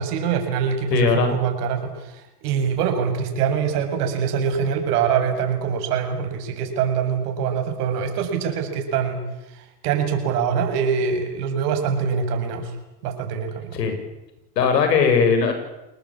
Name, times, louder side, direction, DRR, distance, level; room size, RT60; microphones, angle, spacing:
voice 1, 0.0-9.2 9.5-12.7 13.0-13.8, right 7 dB, 70° right, 5 dB, 7.5 m, -24 dB
voice 2, 0.9-1.3 13.7-13.9 14.6-15.5, left 6 dB, 90° left, 7 dB, 8.0 m, -18 dB
29.0 x 20.0 x 8.9 m, 0.94 s
supercardioid pair, 115°, 48 cm